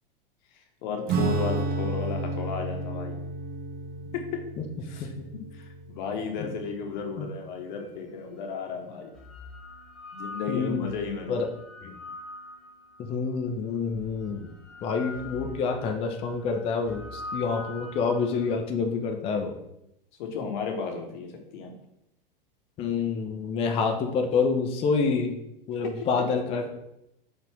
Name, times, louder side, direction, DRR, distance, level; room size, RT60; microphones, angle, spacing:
voice 1, 0.8-3.2 4.1-4.4 4.8-5.1 5.5-9.1 10.1-11.4 20.2-21.7, left 5 dB, 55° left, 3 dB, 0.9 m, -34 dB
Acoustic guitar / Strum, 1.1-7.0, right 2 dB, 30° right, 0.8 m, -32 dB
sound 1, 7.8-7.9 8.9-13.1 13.9-18.6, left 2 dB, ahead, 0.8 m, -43 dB
voice 2, 10.5-10.9 11.3-11.5 11.8-12.0 13.1-14.5 14.8-19.6 22.8-25.3 25.7-26.7, left 5 dB, 20° left, 4 dB, 0.4 m, -27 dB
4.7 x 2.5 x 3.3 m, 0.83 s
figure-of-eight pair, 95°, 29 cm